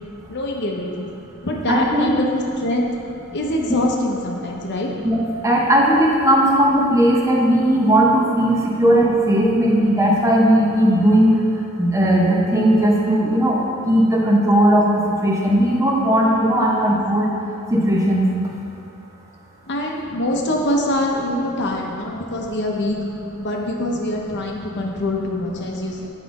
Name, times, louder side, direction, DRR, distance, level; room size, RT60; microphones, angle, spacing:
voice 1, 0.3-1.1 1.4-2.9 3.3-4.9 8.7-8.8 19.7-23.0 23.3-26.1, left 1 dB, 55° left, 0 dB, 0.8 m, -24 dB
voice 2, 1.7-2.1 5.0-11.4 11.8-17.3 17.7-18.5, right 1 dB, 15° right, -3 dB, 0.8 m, -17 dB
7.8 x 4.8 x 4.1 m, 2.5 s
head